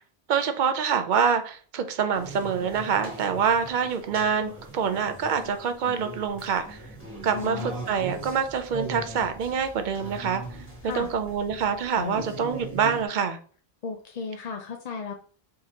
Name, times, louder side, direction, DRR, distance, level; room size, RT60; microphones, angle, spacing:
voice 1, 0.3-6.8 7.2-10.4 10.8-13.4, right 6 dB, 55° right, 8 dB, 0.6 m, -26 dB
sound 1, 2.1-13.1, right 1 dB, 10° right, 1.5 m, -40 dB
voice 2, 7.3-7.7 10.8-11.1 13.8-15.1, left 5 dB, 50° left, 3 dB, 0.5 m, -34 dB
4.4 x 3.7 x 2.7 m, 0.42 s
omnidirectional pair, 1.1 m